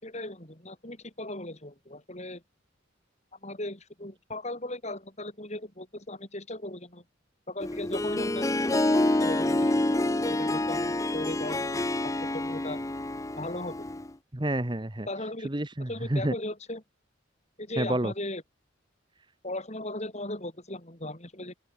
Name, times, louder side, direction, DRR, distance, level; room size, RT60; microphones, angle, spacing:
voice 1, 0.0-2.4 3.3-7.1 7.5-10.0 10.2-12.8 13.4-13.9 15.1-15.5 15.8-16.8 17.6-18.4 19.4-21.5, left 1 dB, 35° left, 6.8 m, -38 dB
Harp, 7.6-14.1, left 1 dB, 15° left, 0.6 m, -27 dB
voice 2, 14.3-15.1 15.4-16.3 17.8-18.1, right 1 dB, 25° right, 1.3 m, -29 dB
open air
head